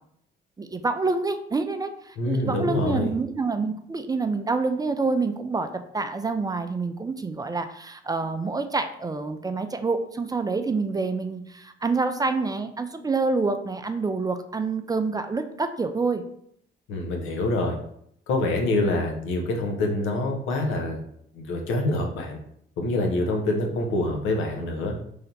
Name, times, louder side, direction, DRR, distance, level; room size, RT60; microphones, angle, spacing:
voice 1, 0.6-5.7 5.9-16.2, right 3 dB, 20° right, 8 dB, 0.3 m, -27 dB
voice 2, 2.2-3.1 16.9-17.7 18.3-21.0 21.3-22.4 22.8-24.9, left 2 dB, 85° left, 2 dB, 0.8 m, -26 dB
3.3 x 2.8 x 3.9 m, 0.70 s
cardioid pair, 90°, 20 cm